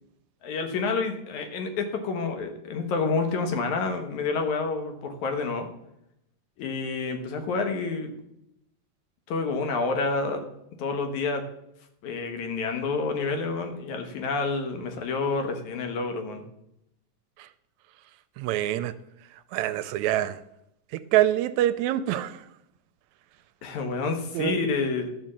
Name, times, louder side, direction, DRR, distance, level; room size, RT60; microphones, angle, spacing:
voice 1, 0.4-5.7 6.6-8.1 9.3-10.5 10.8-11.4 12.0-16.4 23.6-25.1, left 4 dB, 70° left, 6 dB, 2.6 m, -28 dB
voice 2, 18.4-18.9 19.5-20.4 21.1-22.4 24.3-24.6, right 13 dB, 80° right, 12 dB, 1.7 m, -25 dB
12.0 x 5.5 x 7.5 m, 0.82 s
omnidirectional pair, 3.6 m